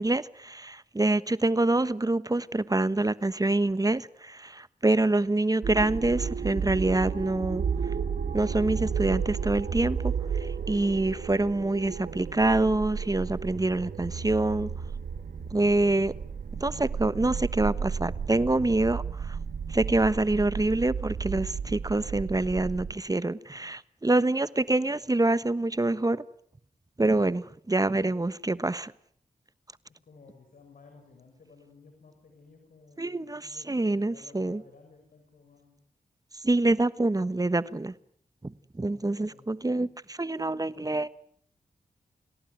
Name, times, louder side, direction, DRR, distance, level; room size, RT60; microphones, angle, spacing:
voice 1, 0.0-7.6 8.3-14.7 15.5-16.1 16.6-19.4 19.7-26.2 27.0-28.9 33.0-34.6 36.4-37.9 38.4-41.1, right 2 dB, 25° right, 1.2 m, -26 dB
sound 1, 5.6-22.9, right 6 dB, 85° right, 1.9 m, -33 dB
voice 2, 30.0-35.8 38.8-40.0, left 4 dB, 75° left, 6.3 m, -55 dB
28.5 x 17.5 x 9.4 m
cardioid pair, 45°, 15 cm